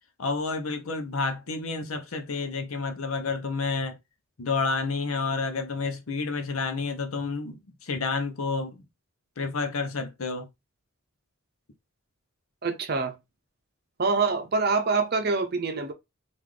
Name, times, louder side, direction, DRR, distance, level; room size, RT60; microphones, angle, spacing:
voice 1, 0.2-4.0 4.4-8.8 9.4-10.5, left 4 dB, 85° left, 0.8 m, -30 dB
voice 2, 12.6-13.1 14.0-15.9, right 4 dB, 45° right, 0.6 m, -25 dB
3.9 x 2.5 x 3.2 m
head